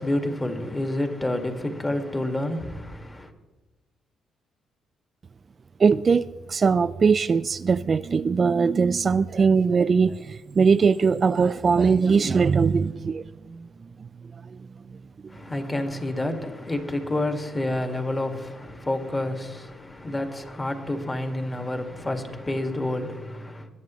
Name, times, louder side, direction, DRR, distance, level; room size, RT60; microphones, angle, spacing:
voice 1, 0.0-3.3 15.3-23.7, left 1 dB, 20° left, 1.9 m, -29 dB
voice 2, 5.8-13.2 13.5-13.7 14.5-14.6, right 5 dB, 40° right, 0.3 m, -21 dB
21.0 x 10.5 x 3.1 m
cardioid pair, 90°, 0 cm